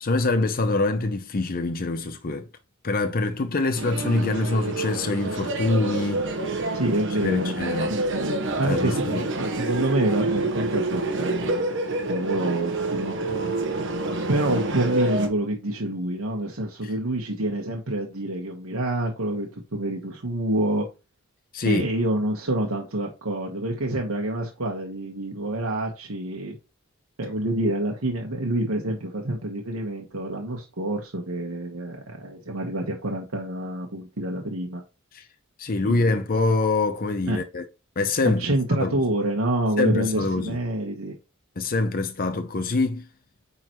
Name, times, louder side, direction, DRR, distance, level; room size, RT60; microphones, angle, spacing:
voice 1, 0.0-2.5 2.8-6.8 7.2-7.9 8.7-9.3 16.8-16.9 21.5-21.9 35.1-35.2 35.6-37.6 38.0-38.5 38.8-39.0 39.8-40.6 41.6-43.1, left 3 dB, 45° left, 0.7 m, -25 dB
sound 1, 3.8-15.3, right 2 dB, 65° right, 1.1 m, -28 dB
voice 2, 6.7-7.5 7.9-11.7 12.1-13.2 14.3-20.9 21.6-26.5 27.2-34.8 35.8-36.0 37.3-37.4 38.4-41.1, right 1 dB, 90° right, 1.2 m, -27 dB
8.8 x 3.9 x 3.0 m
head